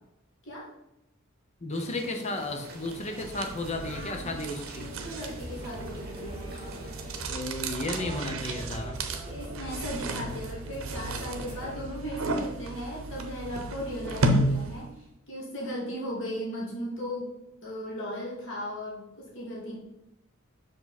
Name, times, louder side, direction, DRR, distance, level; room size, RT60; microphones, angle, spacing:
voice 1, 1.6-4.9 7.3-9.0, left 2 dB, 35° left, 4 dB, 0.9 m, -33 dB
sound 1, 1.7-7.3, right 2 dB, 50° right, 1.6 m, -47 dB
sound 2, 2.6-15.0, right 1 dB, 90° right, 0.8 m, -33 dB
voice 2, 3.8-4.4 4.7-6.9 8.0-8.2 9.3-17.3 17.6-19.8, equal, 65° left, -4 dB, 2.1 m, -37 dB
sound 3, 4.9-11.7, right 1 dB, 25° right, 2.0 m, -44 dB
6.4 x 4.9 x 4.1 m, 0.87 s
head